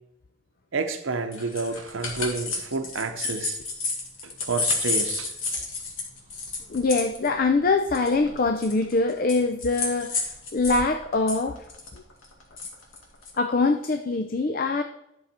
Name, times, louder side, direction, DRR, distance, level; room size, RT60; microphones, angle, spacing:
voice 1, 0.7-3.6 4.2-5.4, right 4 dB, 80° right, 7 dB, 0.8 m, -30 dB
sound 1, 1.3-10.8 11.1-13.4, left 3 dB, 85° left, 2.0 m, -30 dB
voice 2, 6.7-10.1 10.5-11.6 13.4-14.8, left 3 dB, 45° left, 7 dB, 0.5 m, -23 dB
11.0 x 6.4 x 4.3 m, 0.84 s
head